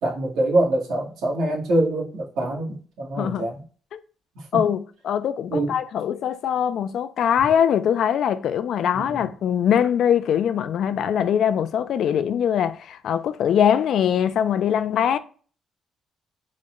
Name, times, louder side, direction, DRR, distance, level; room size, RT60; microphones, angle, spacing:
voice 1, 0.0-3.6 5.5-5.8 8.9-9.2, right 1 dB, 75° right, 1.5 m, -24 dB
voice 2, 4.5-15.2, left 9 dB, 60° left, 0.4 m, -22 dB
4.0 x 2.1 x 3.5 m
cardioid pair, 120°, 0 cm